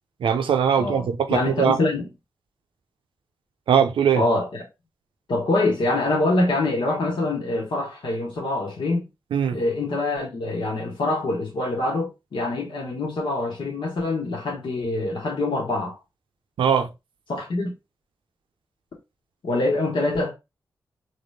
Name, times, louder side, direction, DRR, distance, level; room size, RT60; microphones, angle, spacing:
voice 1, 0.2-1.8 3.7-4.2 9.3-9.6 16.6-16.9, right 8 dB, 85° right, 0.7 m, -20 dB
voice 2, 0.8-2.1 4.2-4.6 5.3-9.0 9.5-15.9 17.3-17.7 19.4-20.3, left 2 dB, 70° left, 1.4 m, -25 dB
4.2 x 3.1 x 3.3 m
cardioid pair, 45°, 8 cm